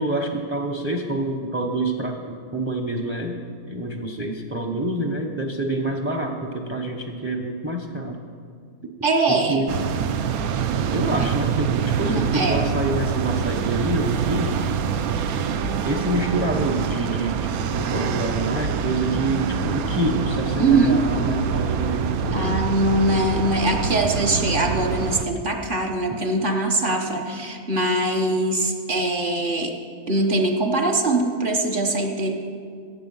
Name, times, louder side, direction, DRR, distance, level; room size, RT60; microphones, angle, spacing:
voice 1, 0.0-8.2 9.3-9.8 10.9-14.5 15.8-22.5, right 1 dB, 10° right, 3 dB, 0.6 m, -27 dB
voice 2, 9.0-9.6 11.2-11.3 12.1-12.6 20.6-21.0 22.3-29.7 30.1-32.3, right 2 dB, 40° right, 3 dB, 1.1 m, -22 dB
sound 1, 9.7-25.3, right 6 dB, 75° right, 1.1 m, -25 dB
16.0 x 8.0 x 5.5 m, 2.1 s
omnidirectional pair, 1.6 m